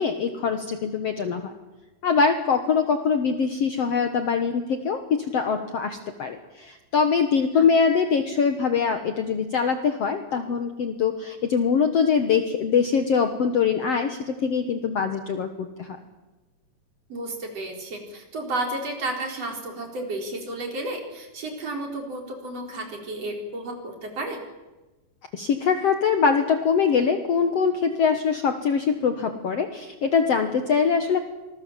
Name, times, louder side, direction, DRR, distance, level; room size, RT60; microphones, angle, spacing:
voice 1, 0.0-1.5 2.0-16.0 25.3-31.2, left 6 dB, 55° left, 7 dB, 1.9 m, -23 dB
voice 2, 17.1-24.4, right 2 dB, 45° right, 3 dB, 4.9 m, -32 dB
26.5 x 21.0 x 7.4 m, 1.1 s
omnidirectional pair, 4.2 m